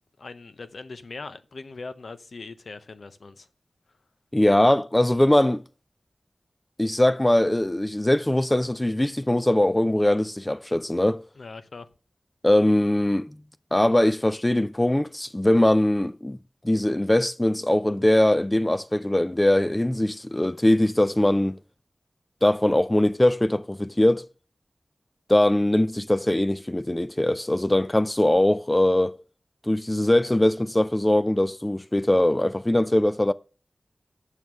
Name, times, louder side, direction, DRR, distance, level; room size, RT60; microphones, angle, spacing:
voice 1, 0.2-3.5 11.4-11.9, left 3 dB, 85° left, 0.7 m, -40 dB
voice 2, 4.3-5.6 6.8-11.2 12.4-13.4 13.7-16.4 16.6-21.6 22.4-24.2 25.3-29.2 29.7-33.3, left 1 dB, 20° left, 0.4 m, -21 dB
7.3 x 6.4 x 6.0 m
wide cardioid pair, 60°, 0 cm